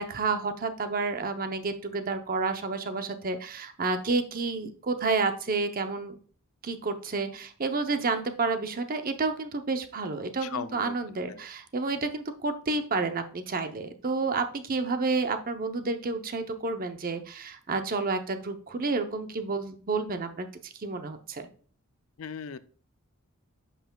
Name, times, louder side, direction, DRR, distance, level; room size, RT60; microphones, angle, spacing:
voice 1, 0.0-6.2 6.6-20.5 20.8-21.5, right 3 dB, 40° right, 7 dB, 0.7 m, -30 dB
voice 2, 10.4-11.4 22.2-22.6, left 7 dB, 70° left, 14 dB, 0.4 m, -38 dB
10.0 x 5.8 x 2.3 m, 0.42 s
head